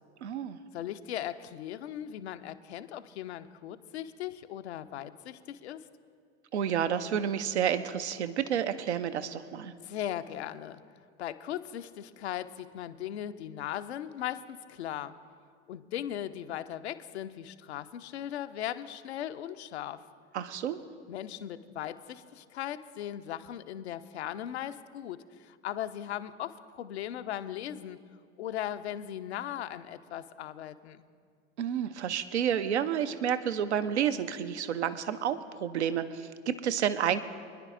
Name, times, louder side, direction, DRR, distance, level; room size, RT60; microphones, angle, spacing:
voice 1, 0.2-0.6 6.5-9.7 20.3-20.8 31.6-37.2, right 9 dB, 70° right, 11 dB, 0.6 m, -30 dB
voice 2, 0.7-5.9 9.8-10.8 11.2-15.1 15.7-20.0 21.1-28.0 28.4-31.0, left 11 dB, 65° left, 11 dB, 0.6 m, -38 dB
25.0 x 10.5 x 2.5 m, 2.1 s
figure-of-eight pair, 70°, 35 cm